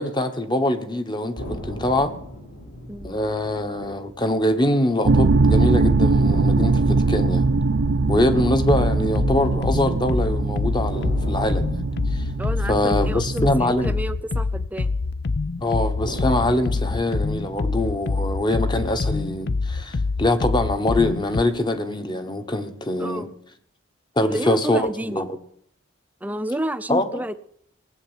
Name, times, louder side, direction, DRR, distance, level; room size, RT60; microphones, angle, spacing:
voice 1, 0.0-2.1 3.0-7.5 8.1-11.8 12.1-12.2 12.7-13.9 15.6-23.3 24.2-25.4 26.9-27.2, left 1 dB, 20° left, 1.2 m, -23 dB
sound 1, 1.4-5.4 5.7-5.8 6.3-10.4 10.9-15.3 16.0-20.4, equal, 70° left, 7.2 m, -39 dB
voice 2, 2.9-3.2 12.4-14.9 23.0-23.3 24.2-25.2 26.2-27.4, right 1 dB, 10° right, 0.6 m, -30 dB
sound 2, 5.1-14.0, right 3 dB, 65° right, 0.6 m, -21 dB
sound 3, 8.7-21.4, left 3 dB, 55° left, 0.6 m, -26 dB
18.5 x 7.9 x 9.0 m
head